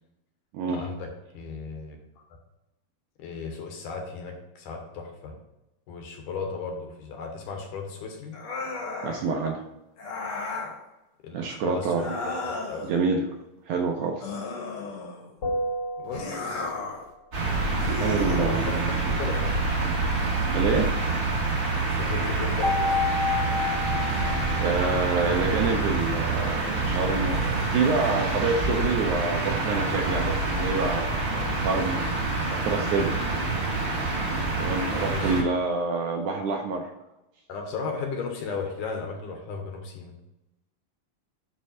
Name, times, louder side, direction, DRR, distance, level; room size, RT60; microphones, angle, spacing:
voice 1, 0.7-2.0 3.2-5.4 5.9-8.4 11.2-12.9 16.0-16.7 18.4-19.6 21.9-23.0 35.1-35.3 35.9-36.0 37.5-40.1, left 4 dB, 70° left, 2 dB, 2.5 m, -35 dB
sound 1, 8.3-9.3 10.0-10.8 11.9-12.9 14.2-15.3 16.1-17.1 17.8-18.8, left 3 dB, 55° left, 1.9 m, -34 dB
voice 2, 9.0-9.6 11.3-12.1 12.9-13.2 13.7-14.3 17.9-18.9 20.5-20.9 24.6-32.0 32.5-33.2 34.6-36.9, right 4 dB, 75° right, 2 dB, 1.9 m, -27 dB
sound 2, 15.4-16.9 22.6-26.0, left 3 dB, 25° left, 1.4 m, -30 dB
sound 3, 17.3-35.4, right 3 dB, 40° right, 2.3 m, -27 dB
9.7 x 3.3 x 5.4 m, 0.93 s
omnidirectional pair, 4.0 m